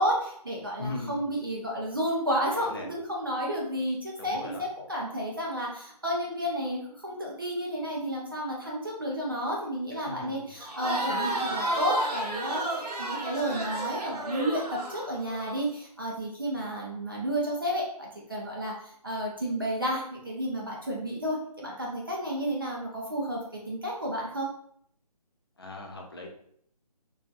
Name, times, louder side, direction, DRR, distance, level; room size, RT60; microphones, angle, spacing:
voice 1, 0.0-23.4 23.7-24.5, equal, 35° right, -3 dB, 0.4 m, -31 dB
voice 2, 0.8-1.2 2.5-2.9 4.2-4.7 9.9-10.4 25.6-26.3, left 2 dB, 40° left, 1 dB, 0.5 m, -39 dB
Crowd, 10.6-15.6, right 1 dB, 75° right, 0.8 m, -32 dB
2.8 x 2.3 x 2.6 m, 0.66 s
hypercardioid pair, 175°, 20 cm